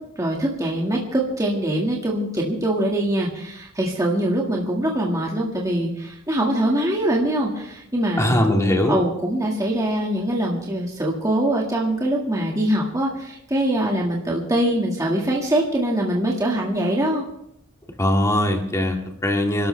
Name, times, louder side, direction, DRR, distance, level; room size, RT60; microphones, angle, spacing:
voice 1, 0.2-8.4 8.9-17.2, right 1 dB, 15° right, -2 dB, 1.9 m, -23 dB
voice 2, 8.2-9.0 18.0-19.7, left 1 dB, 15° left, 2 dB, 2.0 m, -20 dB
27.5 x 12.5 x 3.4 m, 0.78 s
head